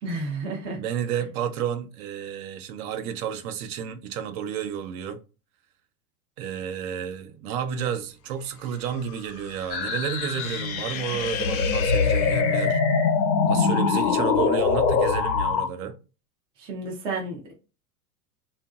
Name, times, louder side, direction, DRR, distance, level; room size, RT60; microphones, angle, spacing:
voice 1, 0.0-0.8 16.6-17.5, right 2 dB, 15° right, 0.3 m, -31 dB
voice 2, 0.7-5.2 6.4-12.8 13.4-16.0, right 8 dB, 55° right, 0.6 m, -31 dB
sound 1, 8.4-12.7, left 10 dB, 60° left, 0.5 m, -40 dB
sound 2, 9.7-15.7, left 5 dB, 90° left, 1.0 m, -23 dB
2.8 x 2.5 x 2.3 m
hypercardioid pair, 120°, 50 cm